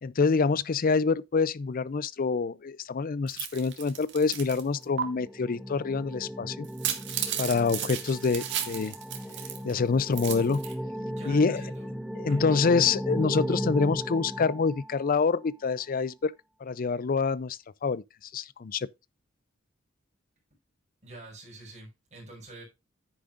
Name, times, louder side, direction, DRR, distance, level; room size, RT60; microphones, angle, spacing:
voice 1, 0.0-6.7 7.4-8.9 9.6-10.6 11.3-11.6 12.2-16.3 16.6-18.0 18.3-18.9, left 4 dB, 45° left, 0.4 m, -26 dB
sound 1, 3.3-4.6 5.0-5.1 6.6-9.7 10.0-10.7, right 9 dB, 60° right, 2.1 m, -34 dB
sound 2, 4.7-15.3, equal, ahead, 0.7 m, -36 dB
voice 2, 11.1-11.9 12.3-12.7 21.0-22.6, right 2 dB, 35° right, 6.1 m, -47 dB
10.0 x 9.7 x 2.5 m
head